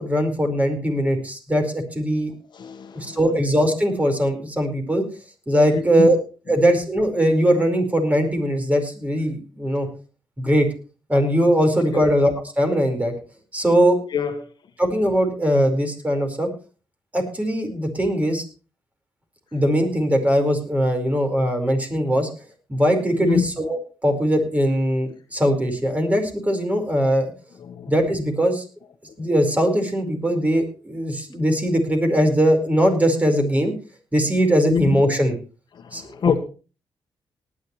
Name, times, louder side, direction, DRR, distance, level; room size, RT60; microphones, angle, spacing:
voice 1, 0.0-2.3 2.9-5.0 5.5-6.2 6.5-9.9 10.4-10.7 11.1-13.1 13.5-14.0 14.8-16.5 17.1-18.4 19.5-22.3 22.7-27.3 27.9-28.6 29.2-33.7 34.1-35.3 35.9-36.0, equal, 15° right, 5 dB, 4.8 m, -20 dB
voice 2, 2.5-3.2 5.7-6.1 11.9-12.1 14.1-14.4 23.2-23.4 27.6-27.9 34.6-35.0 35.7-36.4, left 7 dB, 60° left, 7 dB, 1.5 m, -25 dB
19.0 x 10.5 x 3.2 m, 0.34 s
cardioid pair, 70°, 9 cm